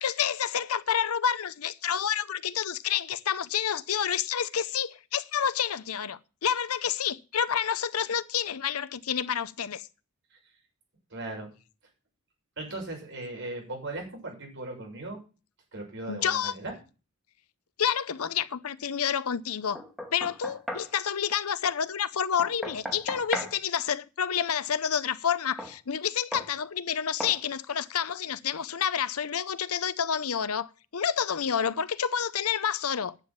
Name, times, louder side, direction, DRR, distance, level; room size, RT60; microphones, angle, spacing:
voice 1, 0.0-9.9 16.1-16.5 17.8-19.8 20.1-33.2, left 8 dB, 85° left, 0.7 m, -29 dB
voice 2, 11.1-11.5 12.6-15.2 15.7-16.7, right 2 dB, 55° right, 6.6 m, -38 dB
Knock, 19.7-20.9 22.4-23.6 25.6-25.7 26.3-26.5 27.2-27.4, equal, ahead, 2.0 m, -36 dB
11.0 x 7.3 x 7.4 m
head